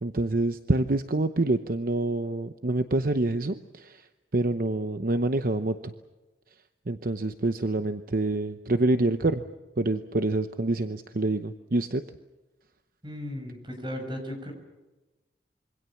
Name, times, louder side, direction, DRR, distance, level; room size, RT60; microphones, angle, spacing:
voice 1, 0.0-4.0 4.3-5.9 6.9-9.4 9.8-12.0, right 2 dB, 55° right, 9 dB, 0.8 m, -26 dB
voice 2, 13.0-14.5, left 1 dB, 25° right, 5 dB, 6.0 m, -36 dB
26.5 x 24.0 x 7.1 m, 1.1 s
head